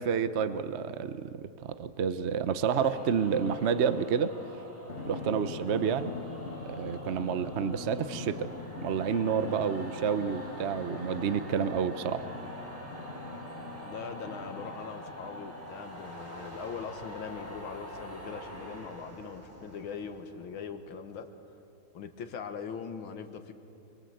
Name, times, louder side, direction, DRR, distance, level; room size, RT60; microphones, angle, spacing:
voice 1, 0.0-4.3 5.1-6.2 6.7-8.5 8.8-12.3, right 7 dB, 55° right, 12 dB, 0.7 m, -29 dB
sound 1, 2.7-21.2, equal, 25° right, 4.3 m, -45 dB
Drum, 4.9-15.9, left 3 dB, 35° left, 2.1 m, -43 dB
voice 2, 13.9-21.3 21.9-23.5, left 6 dB, 85° left, 8 dB, 2.1 m, -41 dB
25.5 x 23.5 x 7.9 m, 2.6 s
omnidirectional pair, 2.2 m